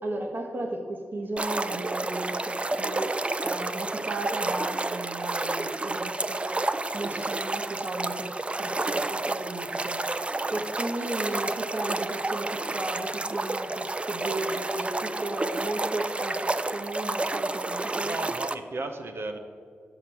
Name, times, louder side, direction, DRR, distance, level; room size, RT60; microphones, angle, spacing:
voice 1, 0.0-6.6 6.9-10.1 10.5-18.2, right 2 dB, 50° right, 2 dB, 1.3 m, -35 dB
sound 1, 1.4-18.5, right 2 dB, 25° right, 0.4 m, -30 dB
voice 2, 18.0-19.4, right 3 dB, 65° right, 6 dB, 0.8 m, -34 dB
6.1 x 5.8 x 6.8 m, 2.2 s
cardioid pair, 50°, 4 cm